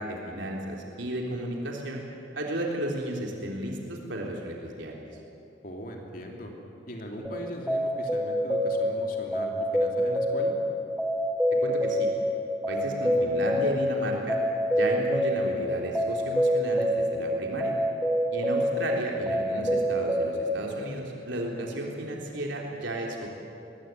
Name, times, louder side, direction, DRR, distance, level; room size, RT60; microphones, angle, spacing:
voice 1, 0.0-2.0 2.3-4.9 11.6-12.1 12.7-14.4 14.7-17.7 18.3-23.3, right 1 dB, 75° right, -1 dB, 3.5 m, -33 dB
voice 2, 5.6-6.5 6.9-10.6, equal, 45° left, 1 dB, 3.0 m, -40 dB
sound 1, 7.2-20.5, equal, ahead, 1.4 m, -27 dB
23.0 x 20.5 x 9.3 m, 2.8 s
head